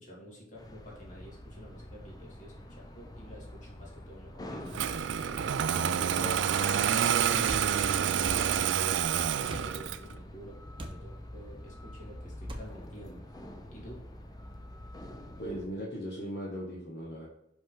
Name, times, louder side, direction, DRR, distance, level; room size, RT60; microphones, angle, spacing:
voice 1, 0.0-4.8 5.6-7.6 7.9-13.2 13.7-14.0, equal, 45° left, -3 dB, 2.4 m, -48 dB
sound 1, 0.6-15.7, left 1 dB, 20° left, 0.7 m, -46 dB
Engine starting, 4.7-10.1, right 9 dB, 80° right, 0.4 m, -28 dB
sound 2, 7.4-7.7 8.2-8.4 9.5-9.7 10.8-11.0 12.5-12.7, right 1 dB, 30° right, 0.9 m, -39 dB
voice 2, 15.4-17.3, equal, 60° left, -5 dB, 1.5 m, -38 dB
5.7 x 5.3 x 3.8 m, 0.83 s
head